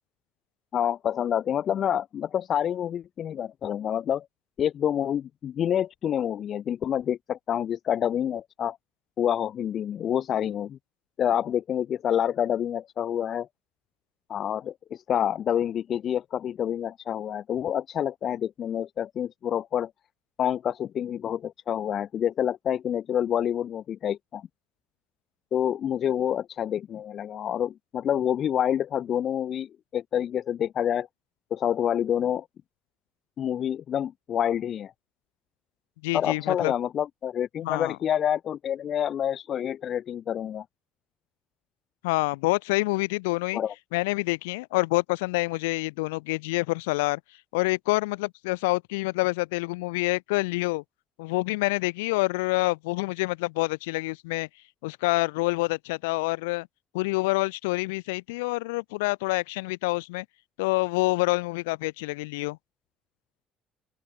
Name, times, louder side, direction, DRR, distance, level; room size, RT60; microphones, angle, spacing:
voice 1, 0.7-4.3 4.6-8.8 9.2-10.8 11.2-13.5 14.3-19.9 20.4-24.5 25.5-31.1 31.5-32.5 33.4-34.9 36.1-40.6 43.5-43.7, left 9 dB, 55° left, 0.5 m, -27 dB
voice 2, 36.0-36.7 37.6-38.0 42.0-43.6 43.9-47.2 47.5-50.8 51.2-54.5 54.8-56.7 56.9-60.3 60.6-62.6, left 24 dB, 80° left, 1.9 m, -27 dB
open air
hypercardioid pair, 55°, 0 cm